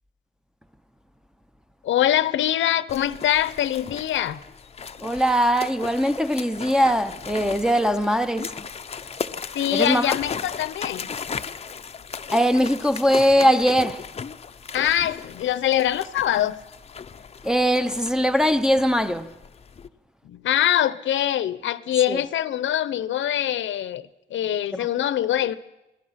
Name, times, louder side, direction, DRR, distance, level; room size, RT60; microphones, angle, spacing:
voice 1, 1.8-4.4 9.5-11.1 14.7-16.6 20.2-25.6, left 11 dB, 80° left, 0.9 m, -23 dB
sound 1, 2.9-19.9, left 6 dB, 30° left, 0.7 m, -37 dB
voice 2, 5.0-8.7 9.7-10.2 12.3-14.1 17.4-19.3 22.1-22.2 24.7-24.9, equal, 5° right, 0.7 m, -21 dB
26.5 x 18.5 x 5.8 m
cardioid pair, 125°, 19 cm